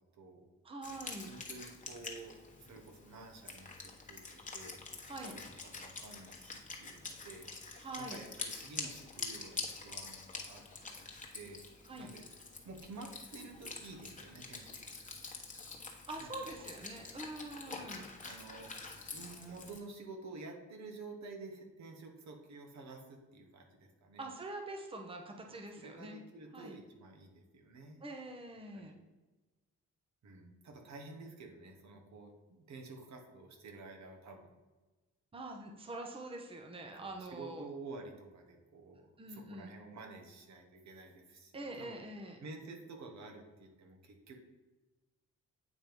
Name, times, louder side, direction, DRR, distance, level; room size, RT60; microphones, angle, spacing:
voice 1, 0.1-0.5 1.3-11.6 12.0-12.2 12.6-15.1 16.2-16.7 17.6-17.9 18.3-18.7 19.1-24.2 25.5-28.0 28.7-28.9 30.2-34.5 37.0-42.0 42.4-44.3, right 3 dB, 65° right, 3 dB, 1.4 m, -51 dB
voice 2, 0.6-1.3 5.1-5.3 7.8-8.2 11.9-12.1 16.1-18.1 24.2-26.2 26.5-26.8 28.0-29.0 35.3-37.7 39.2-39.7 41.5-42.4, right 2 dB, 20° right, 3 dB, 0.9 m, -45 dB
Wind instrument woodwind instrument, 0.8-19.8, left 4 dB, 25° left, 1.2 m, -46 dB
8.7 x 3.0 x 5.2 m, 1.2 s
cardioid pair, 90°, 30 cm